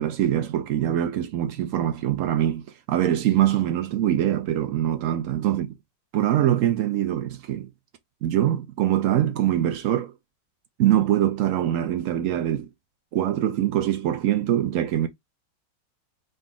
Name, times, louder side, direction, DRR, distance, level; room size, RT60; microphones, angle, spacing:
voice 1, 0.0-5.8 6.1-7.7 8.2-10.1 10.8-12.7 13.1-15.1, right 11 dB, 85° right, 0.7 m, -23 dB
3.9 x 2.5 x 3.7 m
omnidirectional pair, 1.9 m